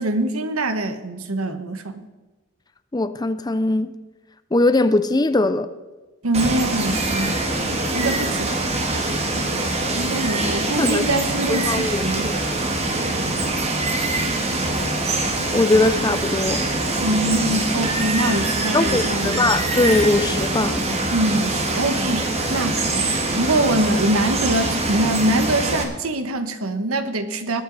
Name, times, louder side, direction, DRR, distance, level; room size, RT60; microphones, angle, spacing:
voice 1, 0.0-2.0 6.2-7.4 7.9-8.7 9.9-12.3 17.0-19.6 21.1-27.6, right 1 dB, 80° right, 1.2 m, -24 dB
voice 2, 2.9-3.9 4.5-5.7 10.8-11.0 11.5-12.4 15.5-16.7 18.7-20.8, left 2 dB, 20° left, 0.5 m, -20 dB
Water, 6.3-25.8, right 2 dB, 30° right, 1.7 m, -24 dB
20.0 x 8.8 x 4.0 m
head